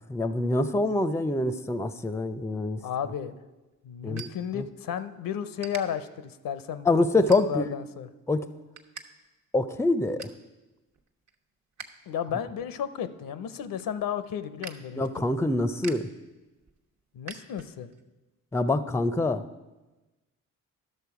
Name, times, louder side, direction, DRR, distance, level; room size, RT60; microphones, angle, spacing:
voice 1, 0.1-2.8 4.0-4.3 4.6-4.7 6.9-7.7 8.3-8.5 9.5-10.3 15.0-16.1 18.5-19.4, left 2 dB, 10° left, 13 dB, 0.5 m, -25 dB
voice 2, 2.8-3.3 3.8-7.0 7.3-8.1 12.1-15.3 17.1-17.9, left 8 dB, 70° left, 12 dB, 0.6 m, -33 dB
sound 1, 3.0-5.1 5.6-5.8 6.4-6.6 7.3-7.8 8.2-9.1 9.3-9.4 9.8-10.4 10.9-12.0 12.3-18.0, right 5 dB, 50° right, 1.1 m, -46 dB
11.5 x 6.5 x 4.8 m, 1.1 s
supercardioid pair, 50°, 35 cm